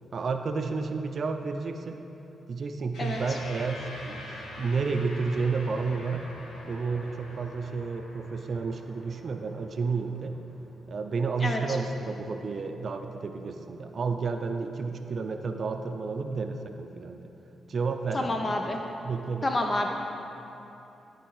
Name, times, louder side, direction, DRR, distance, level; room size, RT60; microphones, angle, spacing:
voice 1, 0.1-2.0 2.5-4.2 4.6-6.2 6.6-10.4 10.9-17.2 17.7-18.4 19.0-19.5, right 4 dB, 55° right, 6 dB, 0.5 m, -31 dB
sound 1, 2.9-11.6, left 1 dB, 85° left, 1.6 m, -45 dB
voice 2, 18.1-18.8 19.4-19.9, left 2 dB, 35° left, 3 dB, 0.6 m, -28 dB
12.0 x 4.6 x 4.7 m, 3.0 s
cardioid pair, 65°, 0 cm